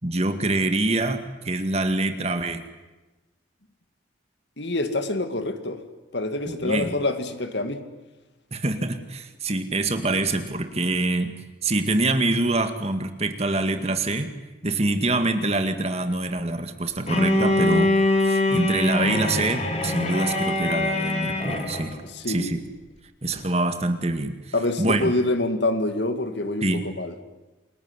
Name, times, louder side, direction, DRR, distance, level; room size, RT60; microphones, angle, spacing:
voice 1, 0.0-2.6 6.5-6.9 8.5-11.3 11.6-14.3 14.6-17.9 18.2-22.0 22.3-22.6 23.2-24.3 24.8-25.1 26.6-26.9, right 2 dB, 35° right, 8 dB, 2.1 m, -25 dB
voice 2, 4.6-5.8 6.1-7.8 22.1-22.6 24.5-27.1, left 2 dB, 65° left, 9 dB, 2.4 m, -26 dB
Bowed string instrument, 17.1-21.9, left 2 dB, 35° left, 3.4 m, -23 dB
28.5 x 21.0 x 9.9 m, 1.1 s
head